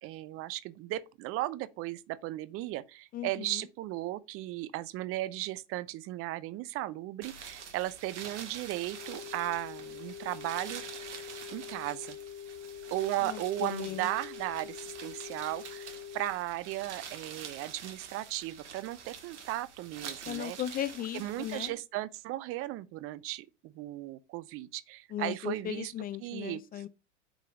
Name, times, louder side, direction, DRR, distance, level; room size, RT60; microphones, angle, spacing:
voice 1, 0.0-10.8 11.5-12.2 12.9-20.6 21.1-25.9 26.2-26.8, right 16 dB, 40° right, 0.6 m, -36 dB
voice 2, 3.1-3.6 13.2-14.1 20.3-21.7 25.1-26.9, left 11 dB, 25° left, 0.5 m, -37 dB
sound 1, 7.2-21.7, right 7 dB, 80° right, 1.8 m, -46 dB
sound 2, 8.9-16.3, left 9 dB, 55° left, 2.8 m, -45 dB
6.5 x 4.8 x 5.9 m
hypercardioid pair, 100°, 35 cm